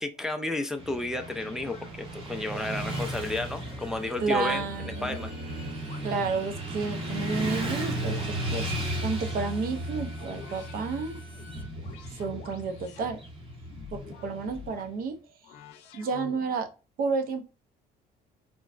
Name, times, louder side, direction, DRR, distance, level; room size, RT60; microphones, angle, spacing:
voice 1, 0.0-5.3, left 2 dB, 5° right, 5 dB, 0.3 m, -32 dB
Motorcycle / Traffic noise roadway noise, 0.8-14.9, right 1 dB, 30° right, 1.0 m, -35 dB
sound 1, 1.2-1.9 2.6-3.1 3.6-5.4 5.8-6.7 7.2-8.3 9.0-9.6 10.2-10.8 11.3-13.1 13.6-14.9 15.4-16.7, left 7 dB, 90° left, 0.5 m, -48 dB
Bowed string instrument, 3.8-11.7, left 2 dB, 55° left, 0.7 m, -53 dB
voice 2, 4.2-5.2 6.0-11.2 12.1-13.2 13.9-15.2 15.9-16.7 17.0-17.4, right 4 dB, 60° right, 8 dB, 0.6 m, -31 dB
3.8 x 2.1 x 2.4 m, 0.32 s
cardioid pair, 110°, 17 cm